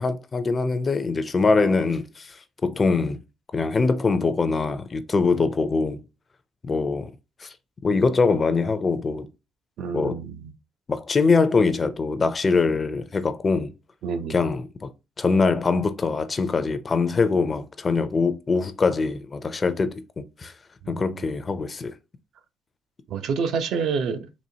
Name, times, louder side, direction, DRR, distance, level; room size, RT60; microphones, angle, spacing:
voice 1, 0.0-2.4 2.6-3.2 3.5-6.0 6.7-7.1 7.4-7.5 7.8-9.3 9.9-10.2 10.9-13.7 14.3-14.9 15.2-20.5 20.9-21.9, left 4 dB, 25° left, 0.4 m, -23 dB
voice 2, 9.8-10.5 14.0-14.4 20.8-21.3 23.1-24.3, right 5 dB, 65° right, 0.5 m, -28 dB
4.1 x 2.8 x 2.7 m
cardioid pair, 145°, 0 cm